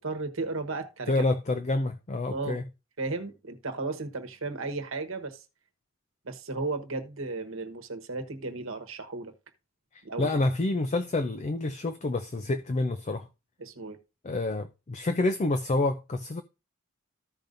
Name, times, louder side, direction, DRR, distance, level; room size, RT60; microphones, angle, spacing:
voice 1, 0.0-1.3 2.3-2.6 3.0-5.4 6.2-9.3 10.0-10.4 13.6-14.0, right 3 dB, 70° right, 1.2 m, -34 dB
voice 2, 1.1-2.6 10.2-13.3 14.2-16.4, left 2 dB, 30° left, 0.4 m, -28 dB
14.5 x 5.2 x 2.6 m
head